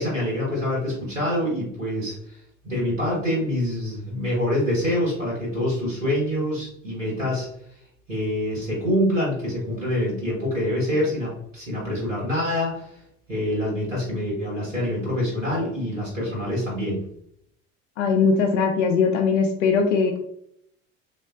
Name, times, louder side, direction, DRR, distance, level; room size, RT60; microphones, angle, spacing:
voice 1, 0.0-7.5 8.1-13.0 13.3-17.0, left 1 dB, 90° right, -5 dB, 1.1 m, -26 dB
voice 2, 18.0-20.2, left 5 dB, 70° left, 3 dB, 0.5 m, -20 dB
3.1 x 2.6 x 2.2 m, 0.72 s
figure-of-eight pair, 65°, 38 cm